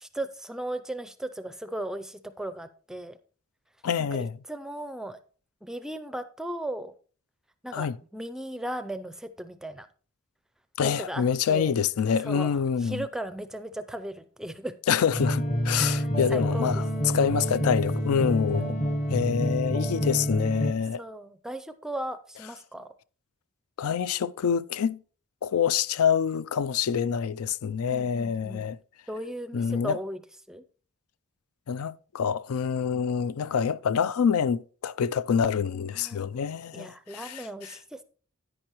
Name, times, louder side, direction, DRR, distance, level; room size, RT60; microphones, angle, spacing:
voice 1, 0.0-3.2 4.0-5.2 5.6-6.9 7.6-9.9 10.8-11.8 12.2-14.7 15.7-16.8 18.5-18.9 21.0-22.9 27.9-28.6 29.1-30.2 30.5-30.6 35.9-36.3 36.7-38.0, right 1 dB, 5° right, 0.4 m, -37 dB
voice 2, 3.8-4.3 7.7-8.0 10.8-13.0 14.9-18.8 19.1-21.0 23.8-25.0 25.4-28.8 29.5-30.0 31.7-37.7, left 7 dB, 85° left, 0.4 m, -26 dB
sound 1, 15.1-20.7, equal, 35° left, 0.9 m, -28 dB
10.0 x 9.6 x 3.0 m
head